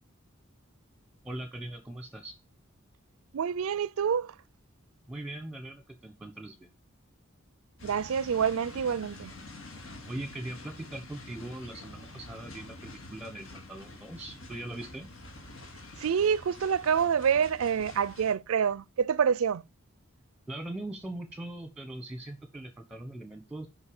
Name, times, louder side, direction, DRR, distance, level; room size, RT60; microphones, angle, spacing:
voice 1, 1.2-2.3 5.1-6.7 10.1-15.1 20.5-23.7, right 1 dB, 5° right, 1.1 m, -41 dB
voice 2, 3.3-4.3 7.8-9.3 16.0-19.6, right 7 dB, 80° right, 0.4 m, -27 dB
sound 1, 7.8-18.3, left 2 dB, 70° left, 2.4 m, -47 dB
8.2 x 5.4 x 7.1 m
head